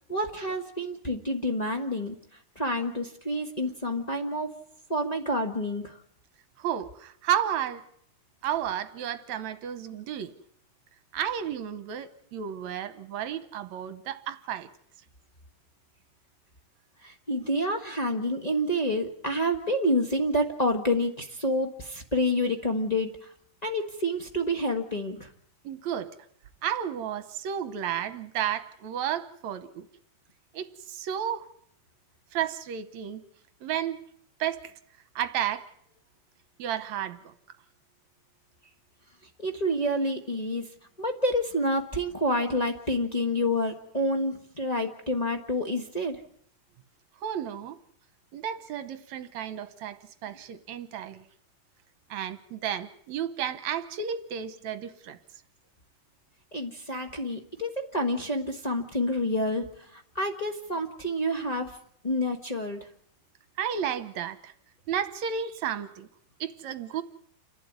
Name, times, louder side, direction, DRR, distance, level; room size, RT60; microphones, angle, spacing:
voice 1, 0.1-2.2 2.5-4.5 4.9-6.0 17.0-23.3 23.6-25.3 39.4-40.7 41.0-46.2 56.5-61.7 62.0-62.9, equal, 30° left, 2 dB, 0.6 m, -28 dB
voice 2, 6.6-7.8 8.4-10.3 11.1-14.7 25.6-26.2 26.6-29.9 30.5-31.5 32.3-33.2 33.6-34.0 34.4-34.7 35.2-35.7 36.6-37.3 47.2-47.8 48.3-51.2 52.1-55.2 63.6-64.5 64.9-66.1 66.4-67.0, right 9 dB, 70° right, 11 dB, 2.3 m, -32 dB
29.0 x 12.0 x 9.6 m, 0.68 s
omnidirectional pair, 3.6 m